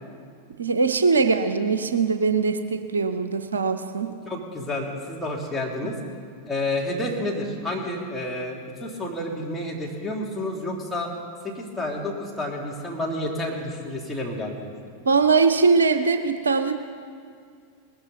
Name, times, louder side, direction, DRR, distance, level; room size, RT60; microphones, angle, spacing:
voice 1, 0.6-4.1 5.8-5.9 15.1-16.7, right 4 dB, 70° right, 10 dB, 0.7 m, -21 dB
voice 2, 4.3-6.0 6.5-11.1 11.4-14.7, left 1 dB, 10° left, -3 dB, 2.6 m, -30 dB
19.5 x 12.5 x 4.0 m, 2.3 s
figure-of-eight pair, 90°, 0 cm